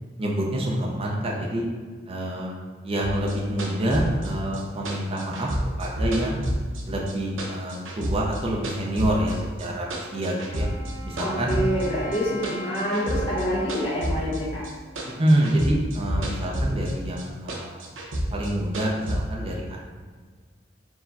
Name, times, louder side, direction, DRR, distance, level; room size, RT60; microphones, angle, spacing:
voice 1, 0.2-1.6 2.1-2.5 2.8-5.5 5.8-6.4 6.9-10.7 11.0-11.6 15.2-17.8 18.3-19.8, right 1 dB, 30° right, -3 dB, 0.6 m, -26 dB
sound 1, 3.0-7.1 7.4-9.3 9.6-10.9 11.2-14.7 15.0-16.9 17.2-19.2, equal, 80° right, 0.8 m, -29 dB
Wind instrument woodwind instrument, 9.9-15.6, equal, 60° left, 0.7 m, -41 dB
voice 2, 11.2-14.6, equal, 30° left, -8 dB, 0.9 m, -27 dB
4.6 x 2.2 x 4.0 m, 1.5 s
head